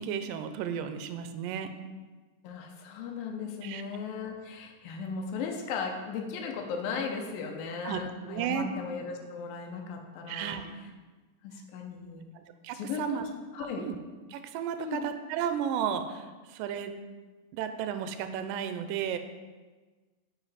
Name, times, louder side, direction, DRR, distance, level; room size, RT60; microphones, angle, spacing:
voice 1, 0.0-1.7 3.6-3.8 7.8-8.7 10.3-10.7 12.3-13.2 13.8-14.0 14.3-16.9 17.5-19.2, right 8 dB, 80° right, 9 dB, 2.2 m, -33 dB
voice 2, 2.4-10.6 11.4-12.3 12.7-13.2 13.5-13.8 14.8-15.1, left 5 dB, 80° left, 2 dB, 2.6 m, -37 dB
9.2 x 5.8 x 4.1 m, 1.3 s
omnidirectional pair, 4.0 m